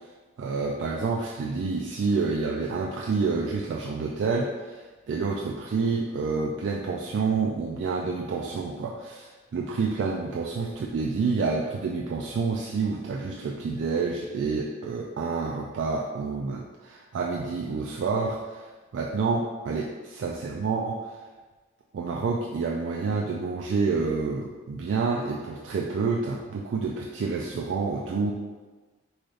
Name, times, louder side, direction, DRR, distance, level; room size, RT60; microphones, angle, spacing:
voice 1, 0.4-18.7 18.9-21.2 21.9-28.3, right 4 dB, 65° right, -2 dB, 0.3 m, -28 dB
3.9 x 2.4 x 3.2 m, 1.3 s
head